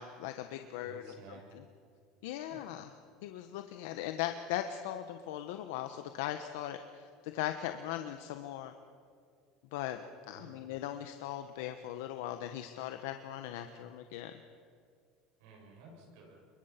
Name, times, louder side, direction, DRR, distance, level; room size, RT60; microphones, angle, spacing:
voice 1, 0.0-1.1 2.2-2.9 3.2-8.7 9.7-10.0 10.3-14.3, left 12 dB, 85° left, 7 dB, 1.1 m, -39 dB
voice 2, 0.8-1.4 2.5-2.7 10.3-10.6 15.4-16.4, right 3 dB, 75° right, 0 dB, 7.5 m, -54 dB
26.0 x 22.5 x 5.9 m, 2.2 s
cardioid pair, 155°, 0 cm